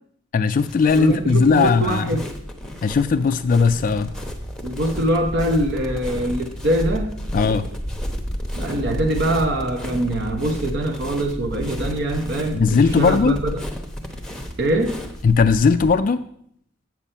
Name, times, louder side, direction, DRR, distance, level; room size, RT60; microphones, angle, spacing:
voice 1, 0.3-2.2 2.8-4.1 7.3-7.7 12.5-13.4 15.2-16.2, left 5 dB, 40° left, 11 dB, 0.3 m, -18 dB
sound 1, 0.6-15.9, equal, 5° left, 0.8 m, -32 dB
voice 2, 1.0-2.3 4.6-7.2 8.5-13.6 14.6-14.9, right 1 dB, 55° right, 4 dB, 0.9 m, -23 dB
7.6 x 7.3 x 5.4 m, 0.68 s
head